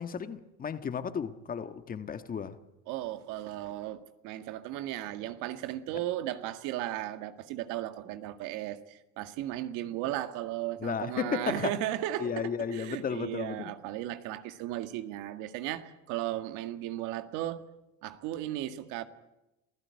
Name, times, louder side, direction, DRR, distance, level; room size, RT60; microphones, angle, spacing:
voice 1, 0.0-2.6 10.8-11.8 12.2-13.7, left 6 dB, 30° left, 1.5 m, -34 dB
voice 2, 2.9-17.6 18.0-19.0, right 13 dB, 90° right, 1.9 m, -36 dB
28.0 x 16.5 x 9.7 m
cardioid pair, 140°, 30 cm